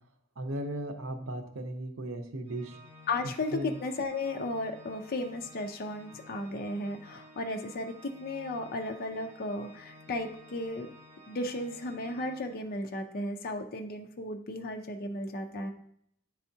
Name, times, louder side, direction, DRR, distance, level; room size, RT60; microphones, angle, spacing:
voice 1, 0.4-2.8 3.5-3.7, right 1 dB, 70° right, 6 dB, 0.8 m, -36 dB
Organ, 2.5-13.1, left 1 dB, 30° right, 1.1 m, -54 dB
voice 2, 3.1-10.9 11.3-15.7, left 2 dB, 45° left, 4 dB, 0.5 m, -35 dB
10.5 x 3.5 x 2.7 m, 0.70 s
head